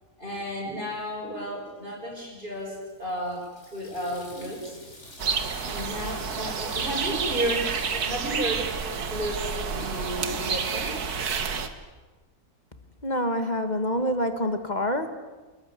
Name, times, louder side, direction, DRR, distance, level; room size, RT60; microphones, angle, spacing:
voice 1, 0.2-3.4 3.7-4.7 5.6-7.7 8.0-8.7 9.1-11.0, equal, 35° right, -6 dB, 5.7 m, -32 dB
Water tap faucet / Sink (filling or washing), 2.5-9.3, left 1 dB, 45° left, 5.1 m, -48 dB
sound 1, 5.2-11.7, right 5 dB, 80° right, 2.0 m, -29 dB
voice 2, 13.0-15.1, equal, 30° left, 8 dB, 1.6 m, -26 dB
27.0 x 21.0 x 8.2 m, 1.2 s
omnidirectional pair, 1.6 m